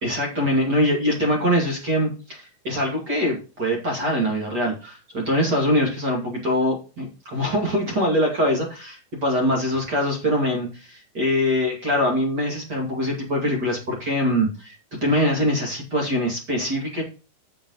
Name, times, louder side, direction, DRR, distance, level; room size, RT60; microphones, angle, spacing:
voice 1, 0.0-14.7 15.0-17.0, equal, 40° right, -1 dB, 1.5 m, -23 dB
7.9 x 6.9 x 3.9 m, 0.33 s
omnidirectional pair, 5.6 m